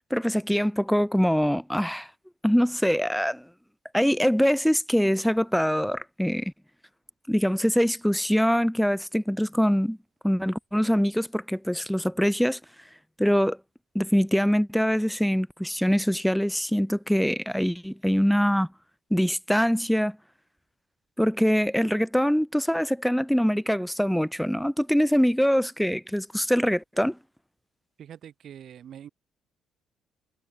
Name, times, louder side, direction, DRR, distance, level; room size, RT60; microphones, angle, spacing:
voice 1, 0.1-2.1 2.4-3.4 3.9-6.5 7.3-10.0 10.2-12.6 13.2-13.6 13.9-18.7 19.1-20.2 21.2-27.2, equal, ahead, 1.3 m, -23 dB
voice 2, 28.0-29.1, right 9 dB, 60° right, 5.1 m, -44 dB
hypercardioid pair, 55°, 0 cm